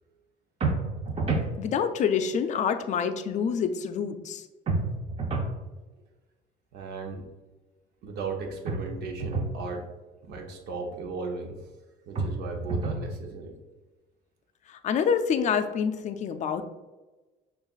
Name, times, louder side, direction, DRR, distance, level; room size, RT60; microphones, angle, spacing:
sound 1, 0.6-1.5 4.7-5.6 8.7-9.6 12.2-13.1, right 3 dB, 35° right, 0.6 m, -29 dB
voice 1, 1.6-4.5 14.7-16.6, left 7 dB, 45° left, 9 dB, 0.4 m, -27 dB
voice 2, 6.7-7.3 8.0-9.9 10.2-11.7 12.1-13.6, right 4 dB, 75° right, 2 dB, 0.7 m, -36 dB
6.4 x 2.4 x 2.4 m, 1.2 s
cardioid pair, 110°, 17 cm